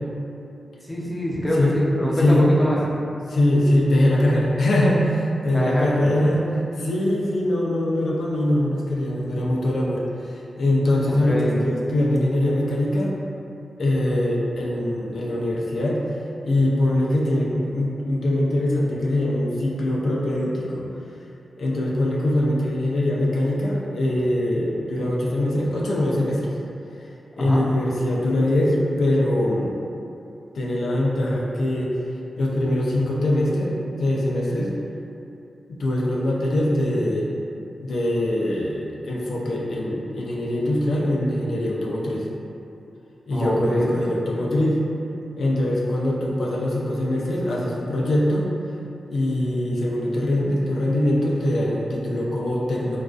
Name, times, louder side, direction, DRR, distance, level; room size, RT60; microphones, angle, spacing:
voice 1, 0.9-2.8 5.5-6.1 11.3-11.6 27.4-27.6 43.3-44.0, equal, 10° left, -6 dB, 0.4 m, -24 dB
voice 2, 2.1-2.4 3.3-6.5 6.8-10.0 10.3-13.1 13.8-16.0 16.4-20.8 21.6-26.5 27.4-29.7 30.5-31.9 32.4-33.7 34.0-34.7 35.7-42.3 43.3-44.8 45.4-48.4 49.1-53.0, left 1 dB, 85° left, -4 dB, 0.3 m, -22 dB
2.4 x 2.2 x 2.3 m, 2.7 s
wide cardioid pair, 125°, 0 cm